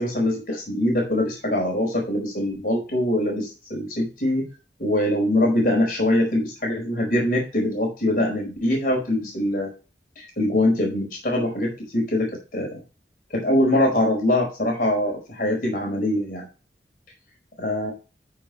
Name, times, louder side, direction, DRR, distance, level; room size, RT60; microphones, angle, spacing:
voice 1, 0.0-4.4 4.8-9.7 10.4-12.8 13.3-16.5 17.6-17.9, left 1 dB, 50° left, 0 dB, 4.8 m, -23 dB
13.5 x 5.9 x 3.1 m, 0.32 s
head